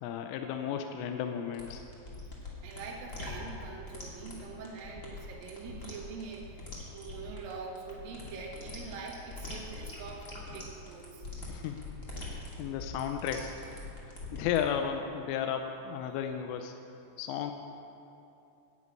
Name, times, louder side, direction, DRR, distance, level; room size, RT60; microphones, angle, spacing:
voice 1, 0.0-1.9 11.5-11.8 12.6-13.6 14.3-16.7 17.2-17.5, left 8 dB, 85° left, 6 dB, 3.1 m, -33 dB
sound 1, 1.5-14.6, left 2 dB, 50° left, 0.9 m, -43 dB
voice 2, 2.6-11.2 12.2-12.4 13.9-14.0 16.1-16.2, right 5 dB, 70° right, -1 dB, 2.2 m, -44 dB
10.5 x 9.7 x 8.9 m, 2.8 s
omnidirectional pair, 5.8 m